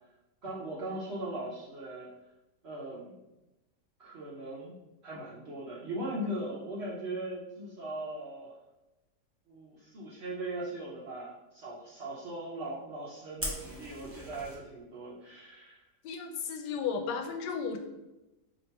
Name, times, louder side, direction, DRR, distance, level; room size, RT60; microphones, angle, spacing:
voice 1, 0.4-2.1 2.6-3.1 4.0-4.7 5.0-8.5 9.5-15.8, right 1 dB, 60° right, -6 dB, 0.7 m, -39 dB
Fire, 13.4-14.5, equal, 15° right, 0.4 m, -39 dB
voice 2, 16.0-17.8, left 6 dB, 85° left, 5 dB, 1.2 m, -34 dB
2.9 x 2.8 x 4.4 m, 0.98 s
omnidirectional pair, 1.8 m